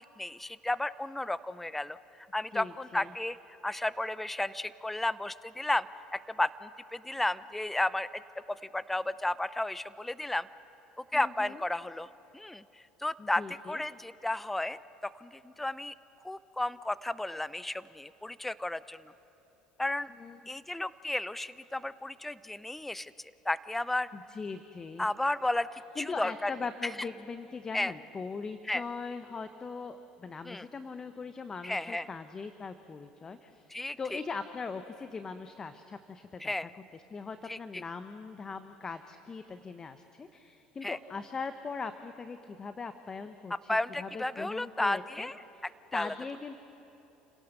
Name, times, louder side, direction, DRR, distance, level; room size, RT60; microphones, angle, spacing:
voice 1, 0.0-3.4 3.6-8.2 8.5-10.5 11.1-12.1 12.3-12.6 13.0-15.9 16.2-19.1 19.8-20.1 20.5-23.1 23.4-24.1 25.0-25.7 26.0-26.5 27.7-27.9 28.7-28.8 30.4-30.7 31.6-32.1 33.7-34.2 36.4-36.7 37.5-37.8 40.8-41.0 43.5-45.4 45.9-46.1, left 1 dB, 10° left, 17 dB, 0.6 m, -33 dB
voice 2, 2.5-3.1 11.1-11.6 13.2-13.8 20.2-20.4 24.1-25.1 26.0-33.7 34.0-36.5 36.9-45.6 45.9-46.6, left 4 dB, 30° left, 10 dB, 1.0 m, -40 dB
29.0 x 17.5 x 6.7 m, 3.0 s
hypercardioid pair, 65°, 2 cm